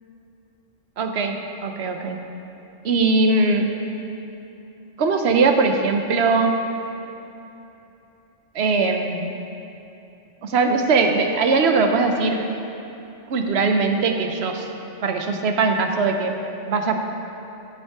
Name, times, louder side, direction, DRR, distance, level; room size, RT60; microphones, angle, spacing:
voice 1, 1.0-1.3 1.6-2.2 2.8-3.7 5.0-6.5 8.5-9.4 10.4-12.5 13.3-14.7 15.0-16.4 16.7-17.0, right 4 dB, 60° right, 4 dB, 1.0 m, -20 dB
10.0 x 6.9 x 4.7 m, 2.9 s
omnidirectional pair, 1.3 m